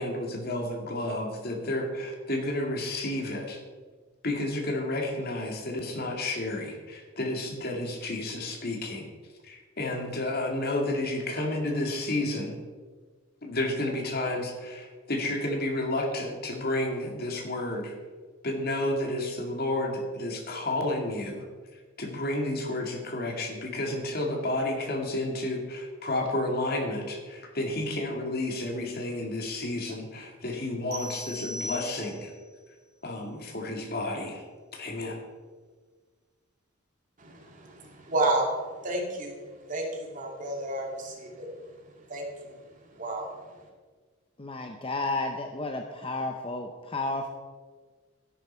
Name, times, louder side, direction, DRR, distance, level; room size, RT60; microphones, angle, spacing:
voice 1, 0.0-3.6 4.2-9.1 9.4-12.6 13.4-17.9 18.4-21.4 22.0-32.3 33.0-34.4 34.7-35.2, left 1 dB, 50° left, 2 dB, 2.2 m, -31 dB
sound 1, 30.9-32.4, left 1 dB, 55° right, 2.3 m, -38 dB
voice 2, 37.2-38.5 38.8-39.4 39.7-41.5 42.1-42.6 43.0-43.3, right 2 dB, 40° right, 0 dB, 2.4 m, -31 dB
voice 3, 44.4-47.3, left 2 dB, 25° left, 4 dB, 0.8 m, -32 dB
13.0 x 11.0 x 4.5 m, 1.5 s
head